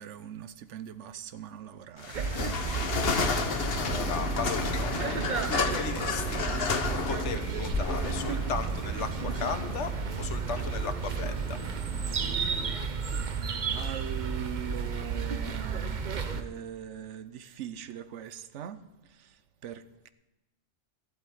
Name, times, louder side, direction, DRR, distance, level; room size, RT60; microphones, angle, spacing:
voice 1, 0.0-2.2 5.3-6.0 12.7-13.1 13.7-20.1, right 9 dB, 85° right, 1.0 m, -42 dB
sound 1, 2.0-12.4, left 5 dB, 55° left, 1.2 m, -32 dB
sound 2, 2.1-16.4, right 5 dB, 45° right, 0.8 m, -32 dB
voice 2, 3.7-5.0 5.5-6.5 7.1-11.6, left 6 dB, 80° left, 1.3 m, -36 dB
sound 3, 3.8-12.8, equal, ahead, 1.2 m, -47 dB
12.0 x 8.2 x 9.2 m
omnidirectional pair, 1.2 m